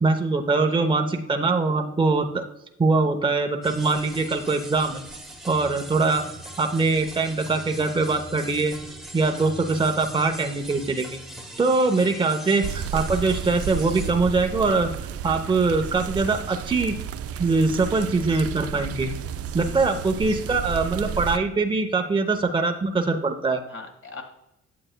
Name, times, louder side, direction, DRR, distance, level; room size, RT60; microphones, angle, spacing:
voice 1, 0.0-2.5 2.8-5.0 5.5-6.2 6.6-8.8 9.1-11.2 11.6-14.9 15.2-17.0 17.4-19.1 19.5-23.6, right 3 dB, 15° right, 4 dB, 0.7 m, -23 dB
voice 2, 0.6-1.0 12.0-12.1 19.7-20.0 20.3-20.5 23.7-24.2, left 3 dB, 45° left, 3 dB, 1.6 m, -42 dB
sound 1, 3.6-14.1, right 1 dB, ahead, 1.2 m, -40 dB
sound 2, 12.6-21.4, right 8 dB, 50° right, 0.4 m, -32 dB
9.0 x 7.5 x 2.2 m, 0.87 s
cardioid pair, 90°, 30 cm